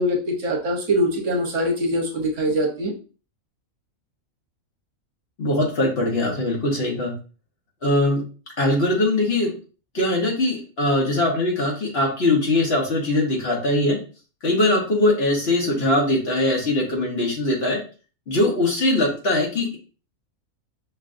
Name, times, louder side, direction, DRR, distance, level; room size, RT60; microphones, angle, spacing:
voice 1, 0.0-2.9, equal, 65° right, 1 dB, 1.1 m, -23 dB
voice 2, 5.4-7.1 7.8-8.2 8.6-9.5 9.9-14.0 14.4-17.8 18.3-19.8, left 1 dB, 50° left, -1 dB, 1.2 m, -21 dB
5.4 x 2.5 x 2.4 m, 0.36 s
omnidirectional pair, 1.5 m